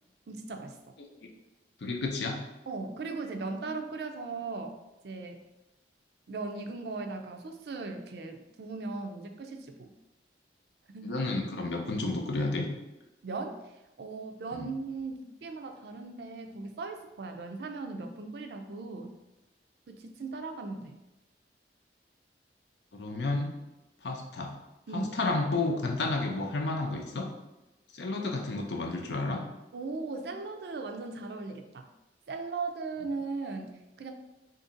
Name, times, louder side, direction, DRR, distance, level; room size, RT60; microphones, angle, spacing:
voice 1, 0.3-0.8 2.7-4.8 5.0-5.5 6.3-9.9 10.9-11.2 13.2-13.7 14.0-19.1 19.9-21.0 24.9-25.1 29.7-31.9 32.3-34.1, right 3 dB, 65° right, 5 dB, 0.4 m, -38 dB
voice 2, 1.8-2.4 11.0-12.7 14.5-14.7 22.9-23.5 24.0-24.6 24.9-27.3 27.9-29.4, left 2 dB, 75° left, 2 dB, 0.6 m, -31 dB
2.8 x 2.6 x 3.8 m, 1.0 s
head